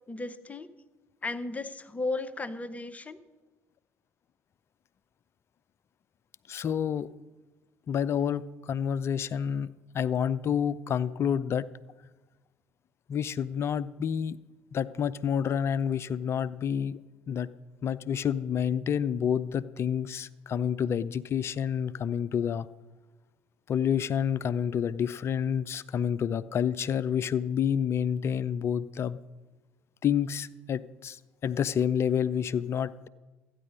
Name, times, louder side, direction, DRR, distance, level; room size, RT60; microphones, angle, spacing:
voice 1, 0.1-0.7 1.2-3.2, left 3 dB, 20° left, 12 dB, 0.8 m, -35 dB
voice 2, 6.5-7.1 7.9-11.7 13.1-14.4 14.7-17.0 17.3-17.5 17.8-22.7 23.7-29.2 30.0-33.1, left 8 dB, 40° left, 18 dB, 0.5 m, -29 dB
14.0 x 9.6 x 5.4 m, 1.2 s
figure-of-eight pair, 50°, 7 cm